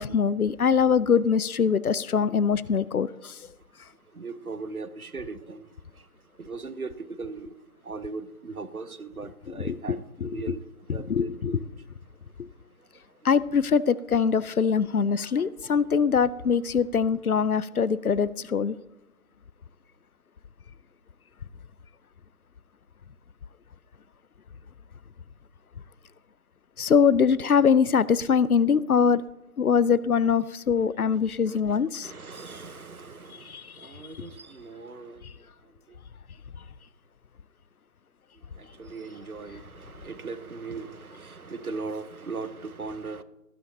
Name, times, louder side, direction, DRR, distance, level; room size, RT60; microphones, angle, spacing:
voice 1, 0.0-3.3 9.6-10.3 11.1-11.6 13.2-18.8 26.8-29.2 29.6-32.1 33.5-33.6, left 6 dB, 70° left, 0.6 m, -23 dB
voice 2, 4.1-5.7 6.4-7.5 7.8-10.6 10.9-11.6 15.2-15.7 31.5-35.2 38.6-43.2, right 4 dB, 70° right, 1.0 m, -39 dB
19.0 x 10.0 x 2.8 m
figure-of-eight pair, 170°, 45 cm